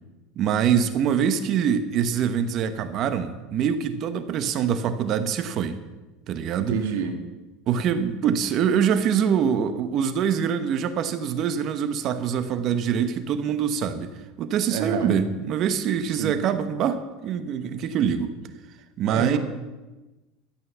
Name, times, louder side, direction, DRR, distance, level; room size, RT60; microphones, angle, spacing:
voice 1, 0.4-5.8 6.3-6.8 7.7-18.3 19.0-19.4, right 8 dB, 45° right, 10 dB, 1.1 m, -24 dB
voice 2, 6.7-7.2 14.7-15.1 16.2-16.4 19.1-19.4, right 7 dB, 85° right, 4 dB, 2.2 m, -28 dB
13.0 x 8.6 x 7.0 m, 1.1 s
supercardioid pair, 130°, 0 cm